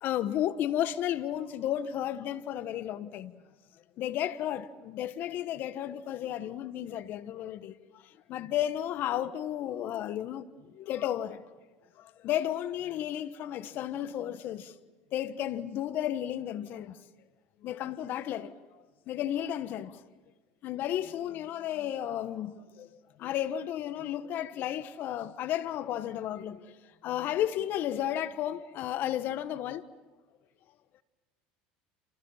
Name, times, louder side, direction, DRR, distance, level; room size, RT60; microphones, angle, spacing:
voice 1, 0.0-3.3 4.0-11.5 12.0-14.7 15.1-17.0 17.6-20.0 20.6-22.9 23.2-29.9, left 11 dB, 55° left, 1.4 m, -33 dB
29.0 x 28.5 x 5.8 m
supercardioid pair, 95°, 4 cm